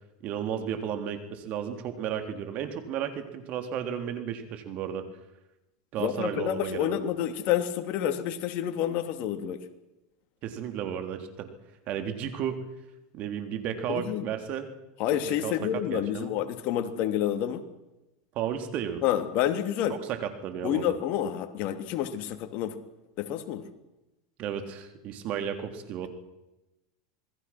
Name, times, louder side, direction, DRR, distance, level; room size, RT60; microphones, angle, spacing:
voice 1, 0.2-5.1 5.9-7.0 10.4-11.5 11.9-12.6 13.1-14.7 15.2-16.3 18.4-19.0 19.9-20.9 24.4-26.1, right 9 dB, 45° right, 7 dB, 3.8 m, -33 dB
voice 2, 6.0-9.6 13.9-14.3 15.0-17.6 19.0-20.0 20.6-22.8 23.2-23.6, left 11 dB, 50° left, 7 dB, 3.1 m, -29 dB
27.0 x 21.0 x 6.3 m, 0.99 s
supercardioid pair, 130°, 3 cm